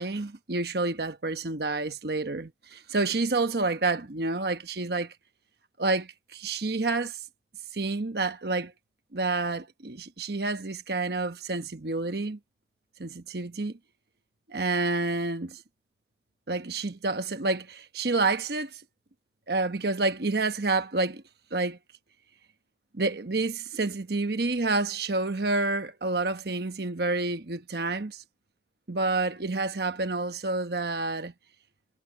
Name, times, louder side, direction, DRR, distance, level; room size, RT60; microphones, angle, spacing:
voice 1, 0.0-5.1 5.8-7.2 7.7-8.7 9.1-12.4 13.0-13.7 14.5-15.6 16.5-18.8 19.5-21.2 21.5-21.8 22.9-28.2 28.9-31.3, right 3 dB, 65° right, 1.1 m, -29 dB
head